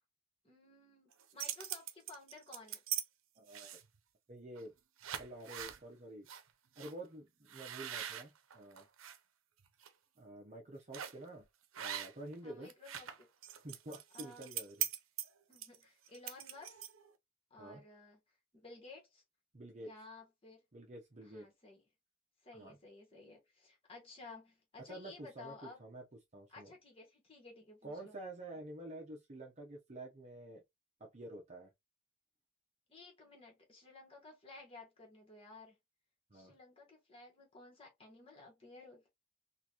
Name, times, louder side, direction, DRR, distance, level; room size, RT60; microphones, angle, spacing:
voice 1, 0.4-2.8 12.4-13.3 14.1-14.5 15.5-16.8 17.5-18.2 18.5-19.2 19.8-20.6 21.2-21.8 22.4-25.8 26.5-28.2 32.9-35.8 36.3-39.1, left 3 dB, 30° left, 1.4 m, -55 dB
sound 1, 1.1-3.0 3.5-4.0 4.6-4.7 5.0-5.8 6.3-6.4 6.8-6.9 7.5-9.2 9.6-9.9 10.9-11.3 11.7-12.3 12.6-17.1, right 10 dB, 85° right, 0.6 m, -42 dB
voice 2, 3.4-3.8 4.3-4.7 5.2-6.3 6.8-8.9 10.2-11.5 11.8-12.7 13.5-14.9 17.6-17.8 19.5-19.9 20.7-21.5 22.5-22.8 24.8-26.7 27.8-30.6 31.0-31.7 36.3-36.5, right 1 dB, 35° right, 0.7 m, -49 dB
3.9 x 2.5 x 2.9 m
head